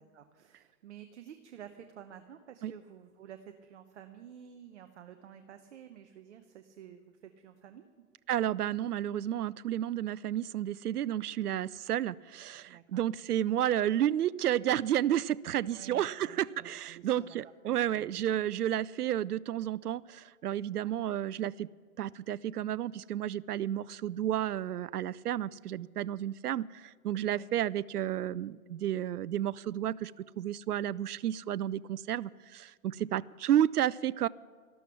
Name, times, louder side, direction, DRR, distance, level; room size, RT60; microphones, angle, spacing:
voice 1, 0.0-8.1 12.7-13.0 15.7-18.0 20.7-20.9 27.3-27.5 33.0-33.3, right 9 dB, 50° right, 8 dB, 0.9 m, -52 dB
voice 2, 8.3-21.7 22.0-34.3, right 11 dB, 85° right, 21 dB, 0.5 m, -31 dB
13.5 x 12.5 x 5.9 m, 1.6 s
hypercardioid pair, 140°, 44 cm